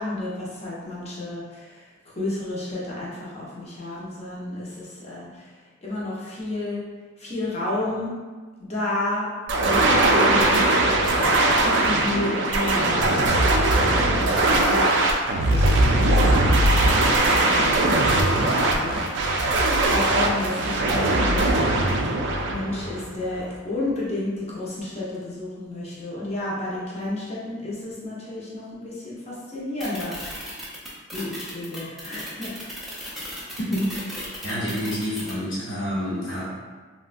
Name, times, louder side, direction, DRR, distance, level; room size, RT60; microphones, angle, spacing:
voice 1, 0.0-1.9 2.1-5.5 5.8-6.8 7.2-8.1 8.6-9.3 9.6-16.4 17.1-19.0 19.9-21.8 22.5-30.6 31.1-32.8, left 2 dB, 30° left, -7 dB, 0.7 m, -32 dB
sound 1, 9.5-23.4, right 2 dB, 60° right, 0.3 m, -20 dB
sound 2, 29.8-35.3, equal, ahead, 0.5 m, -36 dB
voice 2, 34.4-36.5, equal, 80° left, -9 dB, 1.1 m, -27 dB
3.4 x 2.2 x 2.5 m, 1.4 s
head